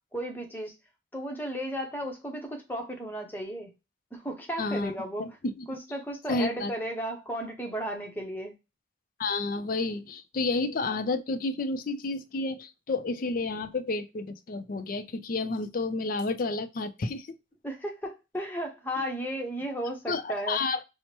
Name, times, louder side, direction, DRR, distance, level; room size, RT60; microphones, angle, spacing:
voice 1, 0.1-0.7 1.1-3.7 4.1-5.3 5.7-8.5 17.6-20.6, right 1 dB, 10° left, 0.8 m, -34 dB
voice 2, 4.6-5.3 5.6-5.7 6.3-6.7 9.2-17.4 20.1-20.8, left 3 dB, 45° left, 0.4 m, -30 dB
4.4 x 2.1 x 2.9 m
head